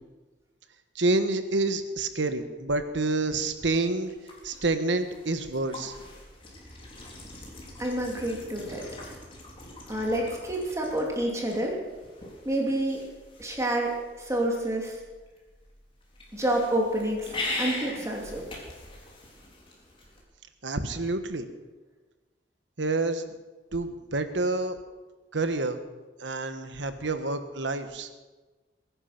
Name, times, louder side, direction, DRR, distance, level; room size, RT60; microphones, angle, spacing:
voice 1, 0.9-4.1 4.4-5.9 20.6-21.5 22.8-23.2 23.7-24.8 25.3-25.8 26.2-28.1, right 2 dB, 75° right, 9 dB, 1.4 m, -28 dB
sound 1, 3.5-20.2, left 2 dB, 30° left, 3.9 m, -42 dB
voice 2, 7.8-8.8 9.9-11.8 12.4-13.1 13.4-15.0 16.3-18.4, right 1 dB, 15° right, -1 dB, 2.9 m, -28 dB
22.5 x 11.0 x 6.0 m, 1.2 s
head